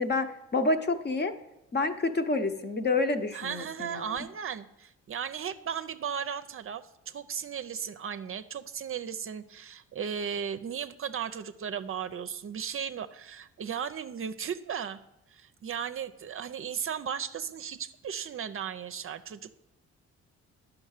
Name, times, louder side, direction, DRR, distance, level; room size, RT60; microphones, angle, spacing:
voice 1, 0.0-1.3 1.7-4.2, left 3 dB, 35° left, 7 dB, 1.0 m, -28 dB
voice 2, 3.3-15.0 15.3-19.5, right 7 dB, 45° right, 11 dB, 0.6 m, -36 dB
9.9 x 6.0 x 6.6 m, 0.90 s
cardioid pair, 90°, 30 cm